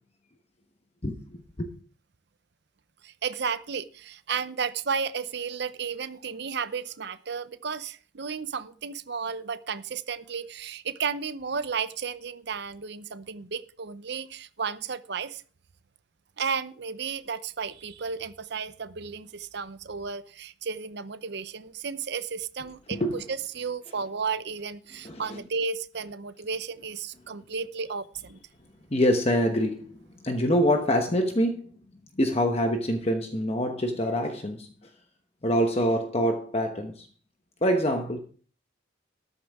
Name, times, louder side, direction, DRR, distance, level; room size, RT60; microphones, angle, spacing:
voice 1, 1.0-1.7 22.9-23.2 25.0-25.2 28.9-30.0 30.2-31.7 32.2-34.7 35.4-37.1 37.6-38.2, equal, 30° left, 1.0 m, -25 dB
voice 2, 3.0-15.4 16.4-28.4, right 5 dB, 60° right, 0.7 m, -33 dB
13.5 x 11.0 x 3.6 m
head